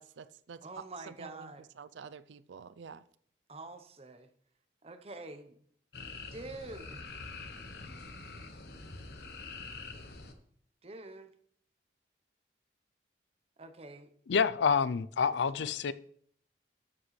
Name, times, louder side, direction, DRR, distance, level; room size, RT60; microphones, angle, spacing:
voice 1, 0.0-3.0, right 6 dB, 80° right, 0.4 m, -49 dB
voice 2, 0.6-1.7 3.5-4.3 4.8-5.6 6.3-7.0 10.8-11.3 13.6-14.1 15.2-15.7, right 2 dB, 35° right, 0.8 m, -46 dB
sound 1, 5.9-10.3, left 3 dB, 60° left, 1.0 m, -45 dB
voice 3, 14.3-15.9, left 6 dB, 80° left, 0.4 m, -28 dB
12.5 x 7.4 x 3.2 m
head